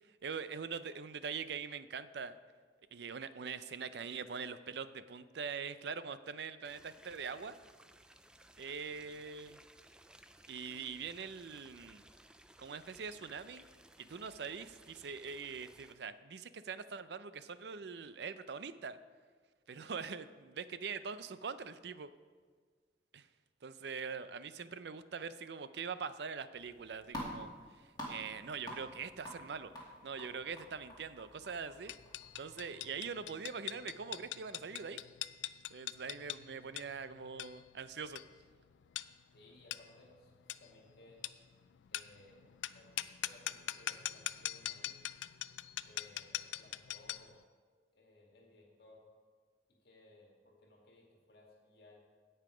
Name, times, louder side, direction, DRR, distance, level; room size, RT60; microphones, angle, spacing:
voice 1, 0.2-2.4 2.9-7.6 8.6-9.6 10.5-12.0 12.6-13.6 14.0-19.0 19.7-22.1 23.1-23.3 23.6-27.5 28.1-29.7 30.0-31.9 32.4-35.0 35.7-38.2, right 5 dB, 70° right, 13 dB, 0.5 m, -43 dB
sound 1, 6.6-15.9, right 1 dB, 5° right, 0.3 m, -60 dB
sound 2, 26.5-33.3, equal, 25° left, 2.4 m, -49 dB
sound 3, 31.9-47.3, left 13 dB, 90° left, 0.4 m, -43 dB
voice 2, 39.3-41.2 41.9-42.4 42.7-45.0 45.8-47.4 47.9-49.0 49.8-52.0, left 2 dB, 60° left, -1 dB, 1.9 m, -61 dB
16.5 x 5.6 x 4.9 m, 1.5 s
head